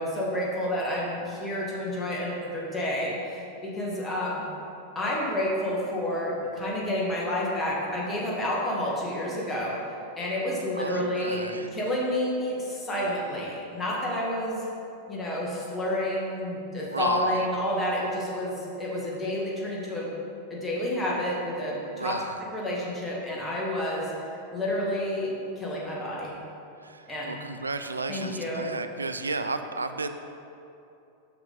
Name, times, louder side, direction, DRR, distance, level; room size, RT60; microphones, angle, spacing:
voice 1, 0.0-4.4 4.9-9.8 10.2-11.4 11.7-14.6 15.1-20.1 20.5-22.1 22.5-24.1 24.5-26.3 27.1-27.4 28.1-28.6, left 1 dB, 15° left, -4 dB, 1.6 m, -29 dB
voice 2, 10.8-11.8 16.9-17.5 22.0-22.3 26.8-30.1, right 3 dB, 75° right, 9 dB, 0.3 m, -33 dB
6.7 x 5.9 x 3.8 m, 2.8 s
figure-of-eight pair, 90°, 0 cm